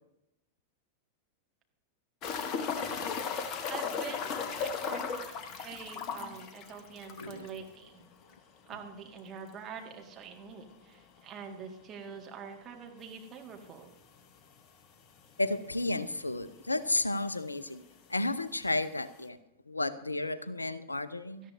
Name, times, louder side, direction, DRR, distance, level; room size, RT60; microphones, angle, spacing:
sound 1, 2.2-7.6 7.9-8.0 8.3-8.4 11.2-11.3 13.0-13.1 13.9-14.0 14.2-14.3 15.2-15.3 15.4-16.1 17.0-17.1, left 6 dB, 35° left, 1.1 m, -36 dB
voice 1, 3.7-8.1 8.7-13.9 21.4-21.5, right 6 dB, 30° right, 2 dB, 1.9 m, -45 dB
voice 2, 15.4-17.8 18.1-19.4 19.7-21.5, left 2 dB, 80° left, 16 dB, 0.5 m, -32 dB
17.0 x 13.0 x 2.7 m, 0.89 s
figure-of-eight pair, 90°, 0 cm